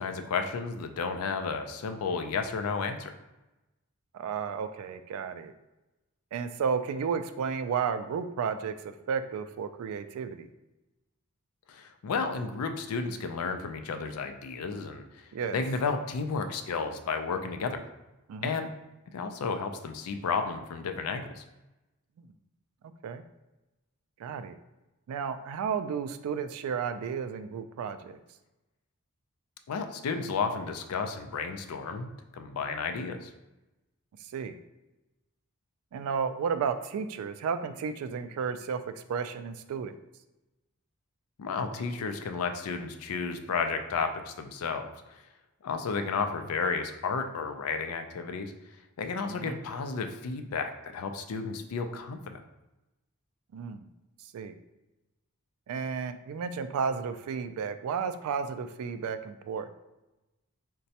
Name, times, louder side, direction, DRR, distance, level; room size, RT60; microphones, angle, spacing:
voice 1, 0.0-3.1 11.7-17.9 18.4-18.7 19.1-21.4 29.7-33.3 41.4-44.9 45.6-48.5 49.0-52.4, left 5 dB, 80° left, 7 dB, 0.4 m, -32 dB
voice 2, 4.1-5.5 6.3-8.7 9.1-10.5 15.3-15.6 18.3-18.6 22.2-22.3 23.0-23.2 24.2-24.6 25.1-28.2 34.2-34.6 35.9-39.9 49.3-49.6 53.5-53.9 54.3-54.6 55.7-59.7, right 6 dB, 75° right, 13 dB, 0.3 m, -33 dB
4.0 x 2.2 x 2.7 m, 1.0 s
head